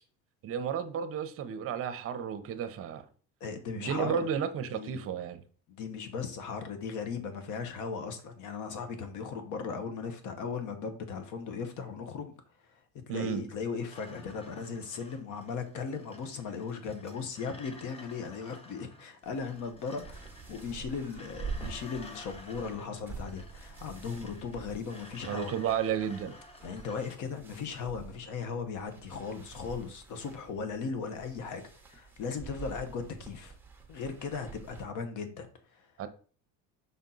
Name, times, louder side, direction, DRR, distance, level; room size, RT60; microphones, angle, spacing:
voice 1, 0.4-3.0 3.7-5.4 13.1-13.4 25.3-26.3 36.0-36.1, right 8 dB, 45° right, 0.7 m, -32 dB
voice 2, 3.4-4.3 4.7-5.0 5.7-12.3 12.6-12.8 13.1-25.5 26.6-33.6 33.9-35.5 35.7-35.9, left 5 dB, 65° left, 1.2 m, -37 dB
sound 1, 13.9-27.2, left 2 dB, 20° left, 0.7 m, -53 dB
sound 2, 19.2-34.8, right 5 dB, 5° right, 0.9 m, -47 dB
5.5 x 4.3 x 3.9 m
cardioid pair, 140°, 32 cm